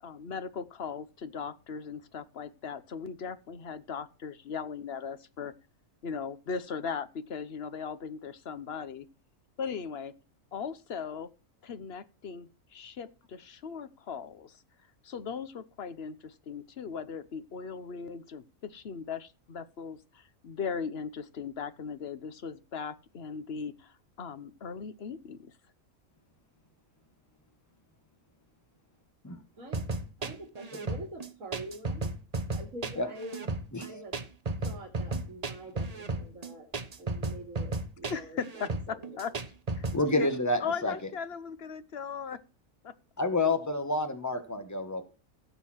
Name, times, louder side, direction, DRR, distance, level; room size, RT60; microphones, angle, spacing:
voice 1, 0.0-5.5 6.0-9.1 9.6-10.1 10.5-11.3 11.6-14.6 15.0-25.5 38.1-39.3 39.8-39.9 40.2-40.3 40.6-42.4 42.8-42.9, left 6 dB, 50° left, 13 dB, 1.1 m, -38 dB
sound 1, 29.7-40.0, right 3 dB, 30° right, 1.1 m, -34 dB
voice 2, 30.2-32.1 32.5-33.5 33.8-34.1 34.6-36.7 37.0-39.1, right 1 dB, 85° right, 1 dB, 3.0 m, -45 dB
voice 3, 39.9-40.9 43.2-45.0, left 2 dB, 15° left, 7 dB, 1.7 m, -28 dB
16.5 x 6.9 x 4.5 m, 0.34 s
omnidirectional pair, 1.4 m